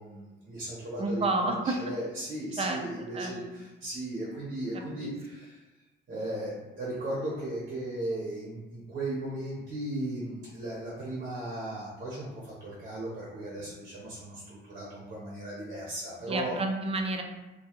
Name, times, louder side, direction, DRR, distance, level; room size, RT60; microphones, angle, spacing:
voice 1, 0.0-5.6 6.1-16.6, right 1 dB, 50° right, -5 dB, 0.8 m, -36 dB
voice 2, 1.0-1.8 2.6-2.8 3.1-3.3 4.7-5.1 16.3-17.2, right 2 dB, 30° right, 3 dB, 0.3 m, -30 dB
2.2 x 2.2 x 2.8 m, 1.1 s
cardioid pair, 90°, 20 cm